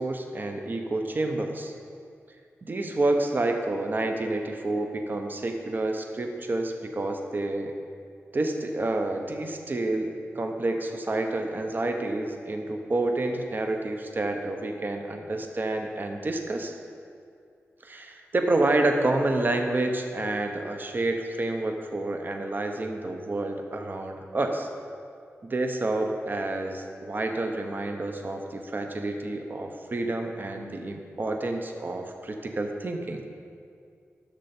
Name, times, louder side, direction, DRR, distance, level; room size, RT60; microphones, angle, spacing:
voice 1, 0.0-1.7 2.6-7.7 8.3-16.7 17.8-24.7 25.4-33.2, right 2 dB, 40° right, 4 dB, 0.8 m, -29 dB
11.5 x 6.7 x 4.3 m, 2.3 s
cardioid pair, 75°, 5 cm